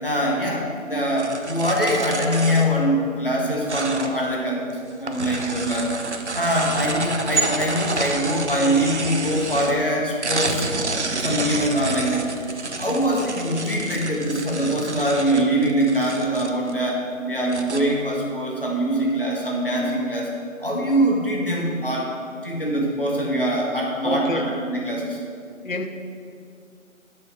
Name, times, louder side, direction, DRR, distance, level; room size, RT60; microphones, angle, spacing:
voice 1, 0.0-6.0 6.3-10.7 11.2-12.3 12.8-20.3 20.6-22.1 22.4-25.2, equal, 40° left, -2 dB, 1.3 m, -23 dB
sound 1, 1.2-2.8 3.7-4.4 4.7-9.9 10.2-16.7 17.1-17.2 17.5-17.8, right 3 dB, 60° right, 0.6 m, -29 dB
voice 2, 24.0-24.5 25.6-25.9, left 2 dB, 70° left, 6 dB, 0.9 m, -27 dB
7.7 x 6.2 x 4.1 m, 2.3 s
figure-of-eight pair, 180°, 41 cm